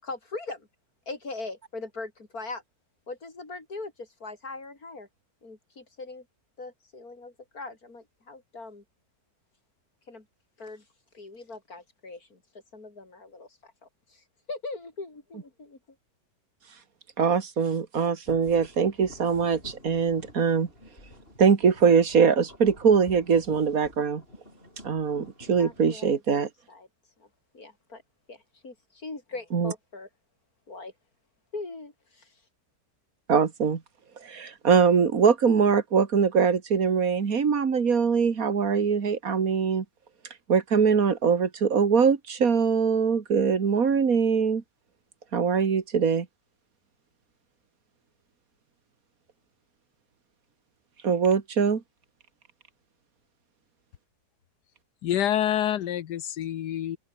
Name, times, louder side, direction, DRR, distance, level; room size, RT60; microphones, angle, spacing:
voice 1, 0.0-0.7 1.1-2.6 3.1-5.1 5.4-6.2 6.6-8.8 10.1-10.3 10.6-10.8 11.1-12.4 12.7-15.8 25.6-26.9 27.2-27.3 27.5-28.0 28.3-30.1 30.7-30.9 31.5-32.4, left 3 dB, 60° left, 4.9 m, -41 dB
voice 2, 17.2-20.7 21.4-24.2 24.8-26.5 29.5-29.7 33.3-33.8 34.2-39.8 40.5-44.6 45.3-46.3 51.0-51.8, right 6 dB, 60° right, 2.4 m, -22 dB
sound 1, 18.3-26.0, left 1 dB, 35° left, 8.5 m, -49 dB
voice 3, 55.0-57.0, left 11 dB, 80° left, 1.5 m, -27 dB
omnidirectional pair, 1.7 m